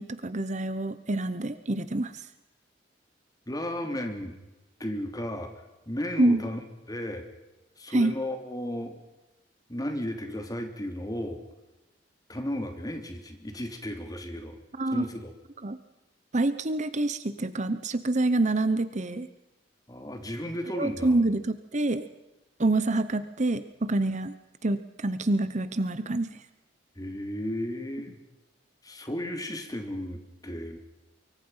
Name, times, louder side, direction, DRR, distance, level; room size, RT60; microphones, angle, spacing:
voice 1, 0.0-2.1 6.2-6.4 7.9-8.1 14.8-15.1 15.6-15.8 16.3-19.3 20.7-22.1 22.6-24.4 24.6-26.4, right 2 dB, 40° right, 12 dB, 1.0 m, -26 dB
voice 2, 3.5-4.3 4.8-7.3 7.8-9.0 9.7-11.4 12.3-14.6 14.9-15.3 19.9-21.2 26.9-28.2 28.8-30.8, left 1 dB, 20° left, 6 dB, 3.1 m, -34 dB
24.5 x 24.0 x 5.7 m, 1.0 s
head